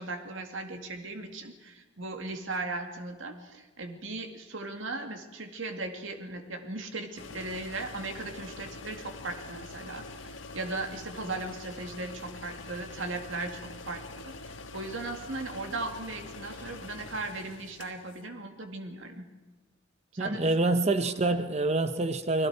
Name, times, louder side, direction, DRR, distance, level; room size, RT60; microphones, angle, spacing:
voice 1, 0.0-19.3 20.1-20.8 21.1-21.4, right 2 dB, 85° right, 2.1 m, -38 dB
sound 1, 7.2-18.3, left 3 dB, 80° left, 1.5 m, -45 dB
voice 2, 20.2-22.5, right 2 dB, 35° right, 0.9 m, -26 dB
29.5 x 20.0 x 4.7 m
head